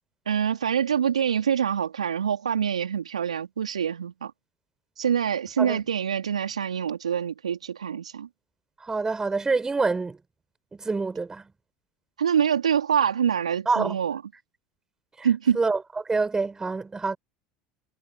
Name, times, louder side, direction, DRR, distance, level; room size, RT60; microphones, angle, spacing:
voice 1, 0.3-4.3 5.0-8.3 12.2-14.2 15.2-15.6, right 8 dB, 80° right, 2.9 m, -25 dB
voice 2, 8.8-10.2 10.7-11.5 13.7-14.0 15.2-15.3 15.5-17.2, right 4 dB, 15° right, 6.0 m, -26 dB
figure-of-eight pair, 75°, 3 cm